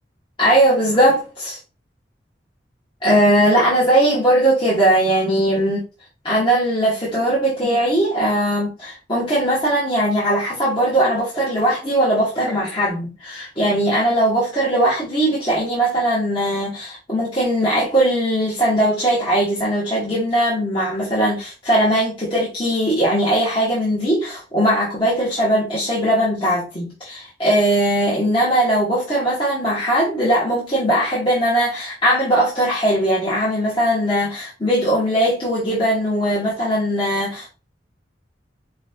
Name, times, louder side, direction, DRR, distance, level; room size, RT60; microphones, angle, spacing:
voice 1, 0.4-1.6 3.0-5.8 6.2-37.5, right 1 dB, 30° left, 1.7 m, -19 dB
5.9 x 2.7 x 2.9 m
head